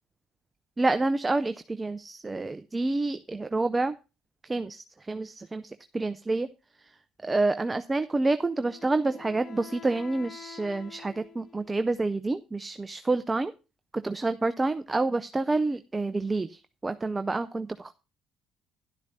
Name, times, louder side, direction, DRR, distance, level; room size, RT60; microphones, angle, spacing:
voice 1, 0.8-3.9 4.5-6.5 7.2-13.5 13.9-17.9, right 2 dB, 20° right, 11 dB, 0.5 m, -28 dB
Wind instrument woodwind instrument, 8.3-11.9, left 6 dB, 50° left, 1.1 m, -47 dB
12.0 x 11.0 x 2.7 m, 0.31 s
hypercardioid pair, 60°, 0 cm